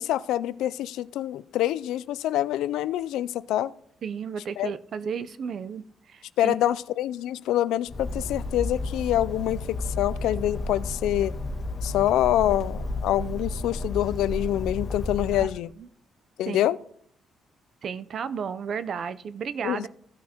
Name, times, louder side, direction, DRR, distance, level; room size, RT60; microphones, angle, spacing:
voice 1, 0.0-3.7 4.6-4.7 6.4-11.3 11.8-15.7 16.4-16.8 19.6-19.9, left 13 dB, 90° left, 18 dB, 0.3 m, -26 dB
voice 2, 4.0-6.5 15.3-15.9 16.5-16.6 17.8-19.9, right 6 dB, 55° right, 14 dB, 0.5 m, -33 dB
Bird, 7.9-15.5, left 2 dB, 50° left, 1.5 m, -32 dB
15.5 x 6.1 x 2.9 m, 0.65 s
cardioid pair, 90°, 0 cm